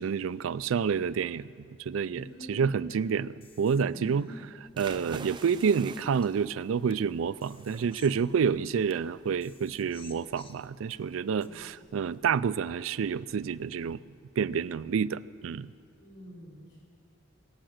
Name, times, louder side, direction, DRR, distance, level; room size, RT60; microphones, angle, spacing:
voice 1, 0.0-4.3 4.8-14.0 14.4-15.7, right 6 dB, 80° right, 18 dB, 0.4 m, -29 dB
sound 1, 2.1-3.0 3.4-5.0 5.4-7.0 7.4-9.0 9.4-11.0 11.4-11.5, left 2 dB, 25° left, 0.8 m, -50 dB
voice 2, 2.3-2.7 4.1-4.4 11.3-11.7 15.9-16.8, equal, 70° left, -5 dB, 5.4 m, -47 dB
sound 2, 4.7-14.0, right 4 dB, 25° right, 0.5 m, -49 dB
23.5 x 8.9 x 6.5 m, 2.3 s
head